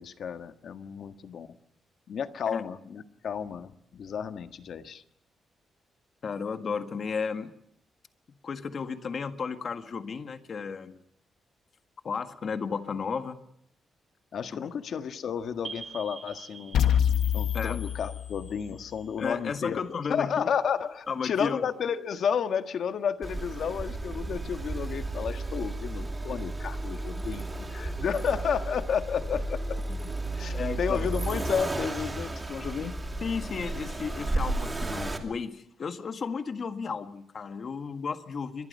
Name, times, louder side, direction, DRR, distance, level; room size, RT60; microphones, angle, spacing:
voice 1, 0.0-1.5 2.1-5.0 14.3-16.8 17.3-19.8 20.1-29.8 30.4-33.0, left 7 dB, 55° left, 8 dB, 1.6 m, -32 dB
voice 2, 6.2-7.5 8.4-11.0 12.0-13.4 14.5-14.7 17.5-17.8 19.2-20.5 21.1-21.7 29.9-30.0 30.5-31.1 33.2-38.7, left 5 dB, 40° left, 8 dB, 1.7 m, -33 dB
sound 1, 15.6-20.1, right 5 dB, 30° right, 2.9 m, -47 dB
sound 2, 16.7-18.8, left 9 dB, 85° left, 1.4 m, -26 dB
Accelerating revving vroom, 23.2-35.2, right 2 dB, 15° right, 2.6 m, -33 dB
28.0 x 24.0 x 5.5 m, 0.71 s
wide cardioid pair, 175°, 0 cm